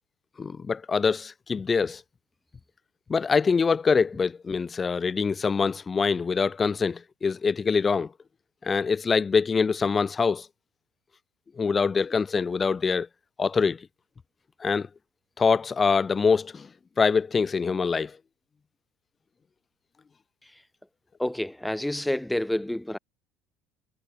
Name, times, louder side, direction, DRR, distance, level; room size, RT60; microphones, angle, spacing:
voice 1, 0.4-2.0 3.1-8.1 8.6-10.5 11.6-13.1 13.4-13.9 14.6-14.9 15.4-16.7 17.0-18.2, left 5 dB, 30° left, 2.1 m, -24 dB
voice 2, 21.2-23.0, left 1 dB, 5° left, 1.9 m, -28 dB
supercardioid pair, 85°, 0 cm